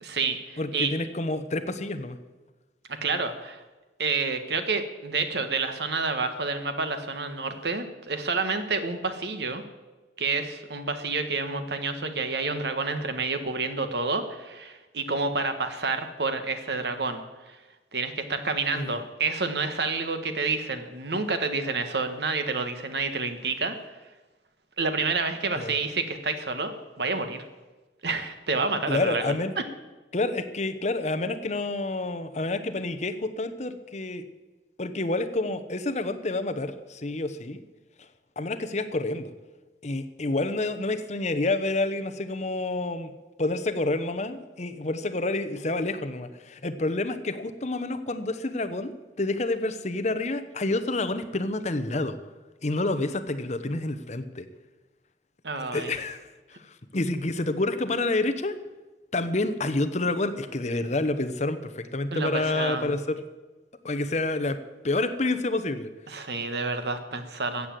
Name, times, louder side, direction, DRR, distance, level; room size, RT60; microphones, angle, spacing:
voice 1, 0.0-0.9 3.0-3.6 4.0-9.6 10.2-17.6 17.9-23.8 24.8-27.4 28.0-29.3 55.4-55.9 62.1-62.9 66.1-67.7, right 4 dB, 70° right, 8 dB, 1.4 m, -29 dB
voice 2, 0.6-2.2 18.7-19.0 25.5-25.8 28.9-29.5 30.1-34.2 34.8-37.6 38.4-39.3 39.8-43.1 43.4-52.2 52.6-54.5 55.6-58.6 59.1-63.2 63.8-64.6 64.8-65.9, left 2 dB, 40° left, 10 dB, 0.9 m, -28 dB
14.0 x 8.4 x 7.6 m, 1.2 s
head